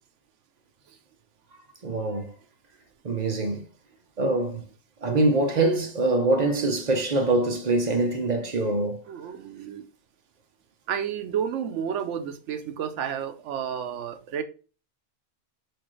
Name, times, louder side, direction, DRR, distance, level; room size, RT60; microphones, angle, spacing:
voice 1, 1.8-2.3 3.0-3.6 4.2-4.6 5.0-9.0, right 2 dB, 45° right, 0.6 m, -24 dB
voice 2, 9.1-9.9 10.9-14.4, right 8 dB, 75° right, 0.9 m, -31 dB
6.1 x 2.5 x 3.1 m
omnidirectional pair, 1.3 m